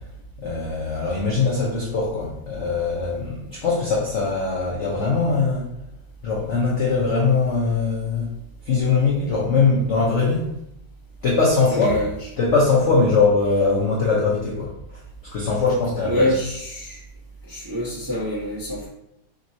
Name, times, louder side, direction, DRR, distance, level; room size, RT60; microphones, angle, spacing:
voice 1, 0.4-5.7 6.2-8.3 8.6-10.5 11.2-12.0 12.4-16.2, left 4 dB, 75° left, -3 dB, 0.6 m, -21 dB
voice 2, 11.7-12.1 16.0-17.0 17.5-18.9, left 1 dB, 20° right, -7 dB, 0.6 m, -25 dB
3.5 x 2.7 x 4.2 m, 0.81 s
omnidirectional pair, 2.2 m